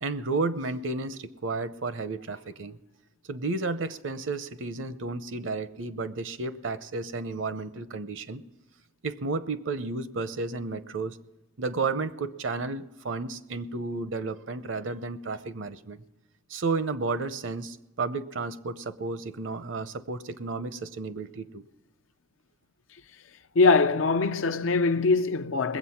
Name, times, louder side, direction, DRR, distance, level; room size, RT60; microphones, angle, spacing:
voice 1, 0.0-2.8 3.3-8.4 9.0-11.2 11.6-16.0 16.5-21.6, right 3 dB, 70° right, 0.7 m, -32 dB
voice 2, 23.6-25.8, left 3 dB, 85° left, 0.6 m, -22 dB
21.0 x 8.2 x 5.8 m
head